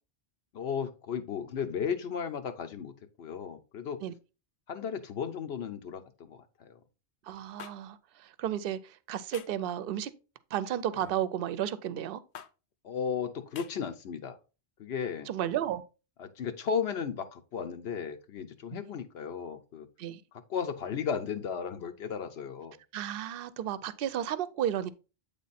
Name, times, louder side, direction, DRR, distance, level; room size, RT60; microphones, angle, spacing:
voice 1, 0.5-4.0 4.7-6.8 12.8-14.4 14.8-15.3 16.2-19.9 20.3-22.8, left 7 dB, 85° left, 1.0 m, -35 dB
voice 2, 7.3-10.1 10.5-12.2 15.3-15.8 18.7-18.8 20.0-20.2 22.9-24.9, right 10 dB, 65° right, 0.7 m, -33 dB
sound 1, 7.6-7.7 9.3-9.6 10.9-11.2 12.3-12.5 13.5-13.7, left 9 dB, 65° left, 0.7 m, -45 dB
8.4 x 3.4 x 4.1 m
omnidirectional pair, 1.1 m